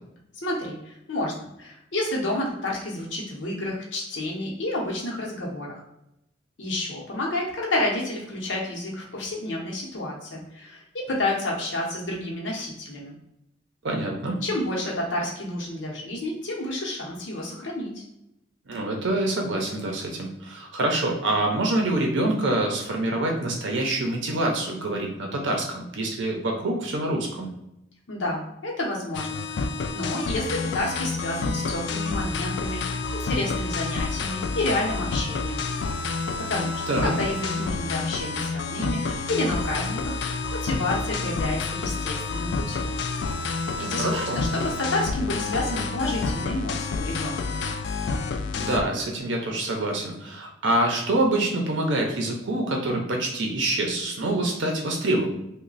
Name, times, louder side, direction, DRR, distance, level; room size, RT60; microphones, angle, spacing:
voice 1, 0.4-5.8 6.6-13.2 14.4-18.0 28.1-29.6 29.9-35.6 36.4-43.0 43.8-47.6, left 1 dB, 90° left, -2 dB, 0.8 m, -30 dB
voice 2, 13.8-14.4 18.7-27.5 36.9-37.1 43.8-44.5 48.5-55.3, right 1 dB, 85° right, 1 dB, 0.6 m, -26 dB
sound 1, 29.1-48.8, left 4 dB, 70° left, 0.3 m, -29 dB
3.1 x 2.2 x 3.9 m, 0.84 s
head